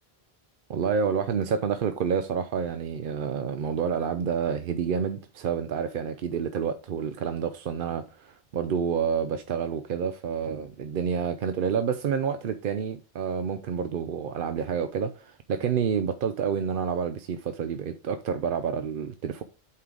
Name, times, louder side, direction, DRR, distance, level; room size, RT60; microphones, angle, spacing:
voice 1, 0.7-19.4, right 7 dB, 65° right, 0.7 m, -29 dB
8.6 x 3.8 x 4.7 m
omnidirectional pair, 1.0 m